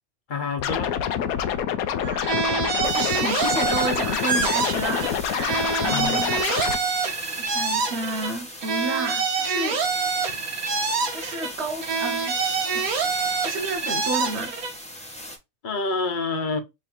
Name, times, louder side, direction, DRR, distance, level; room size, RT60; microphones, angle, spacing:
voice 1, 0.3-0.9 5.9-6.2 10.3-10.4 15.6-16.6, left 4 dB, 45° left, 0.7 m, -27 dB
Scratching (performance technique), 0.6-6.8, left 9 dB, 80° left, 1.0 m, -27 dB
voice 2, 1.9-2.5 2.8-6.4 7.4-9.8 11.1-12.4 12.7-12.9 13.4-14.6, right 3 dB, 55° right, 0.9 m, -31 dB
sound 1, 2.2-5.1 5.4-8.3 8.6-11.5 11.8-14.7, right 5 dB, 75° right, 1.5 m, -26 dB
sound 2, 2.8-15.4, equal, 5° left, 0.8 m, -39 dB
3.6 x 3.2 x 4.3 m
omnidirectional pair, 1.5 m